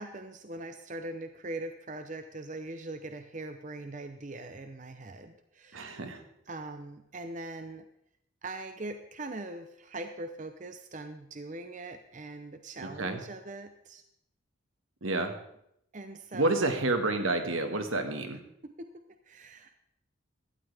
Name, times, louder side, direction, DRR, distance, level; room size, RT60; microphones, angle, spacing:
voice 1, 0.0-6.0 6.5-7.8 8.4-14.0 15.9-16.7 18.8-18.9 19.3-19.7, right 2 dB, 35° right, 7 dB, 0.7 m, -41 dB
voice 2, 5.7-6.2 12.8-13.2 15.0-15.3 16.3-18.4, right 2 dB, 80° right, 6 dB, 1.7 m, -29 dB
17.0 x 12.5 x 3.5 m, 0.77 s
head